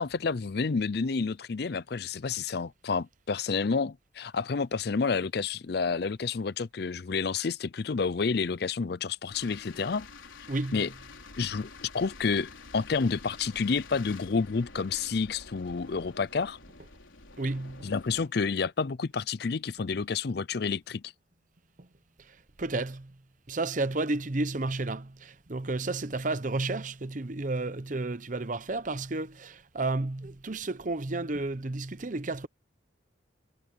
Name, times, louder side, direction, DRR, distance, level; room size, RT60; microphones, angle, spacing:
voice 1, 0.0-10.1 10.7-10.9 11.4-16.6 17.8-21.1, left 5 dB, 55° left, 0.5 m, -29 dB
sound 1, 9.3-18.3, left 3 dB, 85° left, 4.3 m, -49 dB
voice 2, 10.5-10.8 17.4-17.9 21.8-21.9 22.3-23.1 23.5-32.5, right 2 dB, 40° right, 0.8 m, -32 dB
head